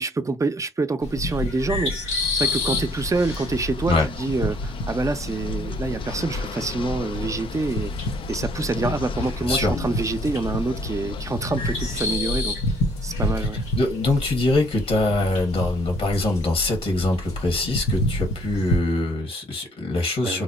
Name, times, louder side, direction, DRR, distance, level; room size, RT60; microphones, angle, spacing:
voice 1, 0.0-7.9 8.3-12.5 13.0-13.6 20.2-20.4, right 3 dB, 30° right, 0.7 m, -26 dB
sound 1, 1.0-18.8, left 2 dB, 90° left, 0.8 m, -29 dB
sound 2, 2.4-12.2, left 7 dB, 50° left, 0.5 m, -36 dB
voice 2, 9.4-9.7 13.4-13.5 13.7-20.4, left 2 dB, 70° left, 1.4 m, -23 dB
3.1 x 2.1 x 4.1 m
hypercardioid pair, 45°, 11 cm